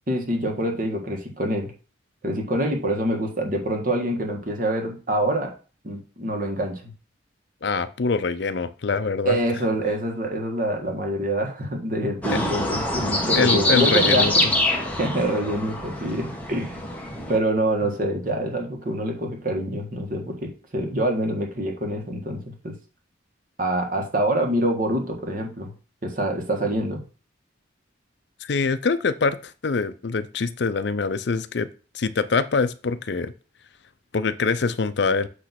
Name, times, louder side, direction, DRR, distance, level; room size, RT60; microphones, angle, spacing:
voice 1, 0.1-1.7 2.2-5.5 5.8-6.9 9.2-14.3 15.0-16.8 17.3-22.8 23.6-25.7 26.0-27.0, right 1 dB, 45° right, 3 dB, 1.6 m, -26 dB
voice 2, 7.6-9.4 13.3-14.3 28.4-31.7 31.9-33.3 34.1-35.3, left 4 dB, 60° left, 13 dB, 0.5 m, -24 dB
sound 1, 12.2-17.4, left 1 dB, 10° left, 1.2 m, -24 dB
8.2 x 3.1 x 5.9 m, 0.36 s
head